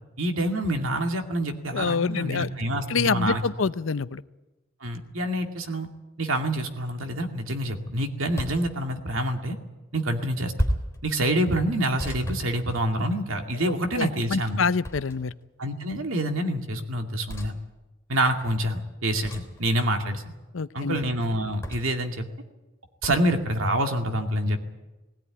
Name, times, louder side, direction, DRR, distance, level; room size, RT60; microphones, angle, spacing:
voice 1, 0.2-3.4 4.8-5.9 6.2-9.6 9.9-10.5 11.0-14.7 15.6-17.6 18.1-20.2 20.7-22.2 23.0-24.7, right 1 dB, 80° right, 4 dB, 2.3 m, -27 dB
voice 2, 1.7-2.5 2.9-4.2 13.6-15.3 20.5-21.0, left 5 dB, 70° left, 15 dB, 0.6 m, -26 dB
sound 1, 8.3-8.7 10.6-11.0 12.0-13.2 14.8-15.4 17.3-17.5 19.2-19.6 21.6-22.0 23.0-23.3, equal, 15° left, 3.4 m, -32 dB
19.0 x 17.0 x 9.8 m, 1.1 s
head